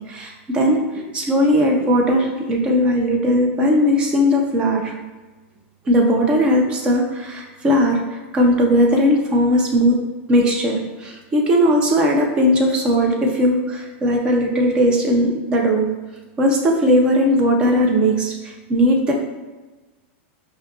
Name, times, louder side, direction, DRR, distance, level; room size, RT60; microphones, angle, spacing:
voice 1, 0.1-4.9 5.9-8.0 8.3-10.0 10.3-15.9 16.4-19.1, equal, 15° right, 1 dB, 0.5 m, -18 dB
5.0 x 2.7 x 2.3 m, 1.2 s
supercardioid pair, 175°, 7 cm